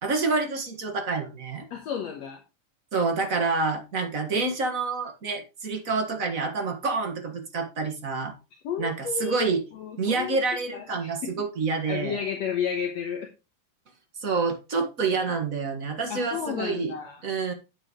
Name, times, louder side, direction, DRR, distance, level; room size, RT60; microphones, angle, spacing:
voice 1, 0.0-1.7 2.9-8.3 8.8-9.6 10.0-12.2 14.2-16.9 17.2-17.5, right 4 dB, 40° right, 4 dB, 1.3 m, -27 dB
voice 2, 1.7-2.4 8.6-9.4 9.7-10.4 10.7-11.4 11.9-13.3 16.1-17.2, left 7 dB, 60° left, 3 dB, 2.2 m, -32 dB
8.9 x 8.8 x 3.1 m, 0.29 s
omnidirectional pair, 3.7 m